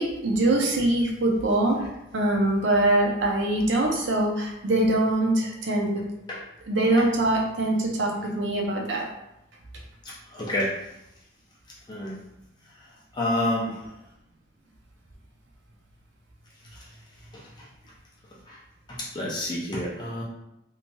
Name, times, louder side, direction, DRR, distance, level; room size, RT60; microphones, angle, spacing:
voice 1, 0.0-1.8 2.1-6.0 6.7-9.1, right 1 dB, 70° right, 0 dB, 0.5 m, -23 dB
voice 2, 10.0-10.7 11.9-12.2 13.1-13.8 17.3-17.4 18.5-18.6 18.9-20.2, left 1 dB, 20° left, -4 dB, 0.4 m, -29 dB
3.0 x 2.6 x 2.2 m, 0.86 s
head